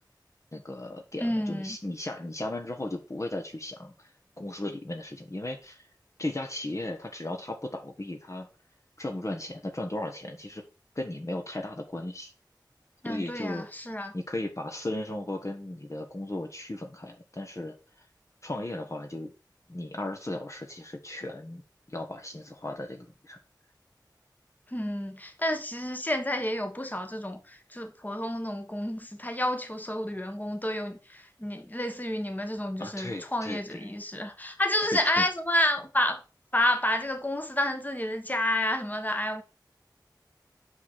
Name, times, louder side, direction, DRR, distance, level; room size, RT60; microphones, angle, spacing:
voice 1, 0.5-4.1 4.4-5.9 6.2-8.5 9.0-10.6 10.9-12.3 13.0-13.7 14.1-18.1 18.4-19.3 19.7-21.6 21.9-23.4 32.8-33.8 35.2-35.3, left 1 dB, 40° left, 1.2 m, -36 dB
voice 2, 1.2-1.8 13.0-14.1 24.7-36.2 36.5-39.4, left 1 dB, 20° left, 1.4 m, -30 dB
5.8 x 5.8 x 6.2 m
wide cardioid pair, 55°, 8 cm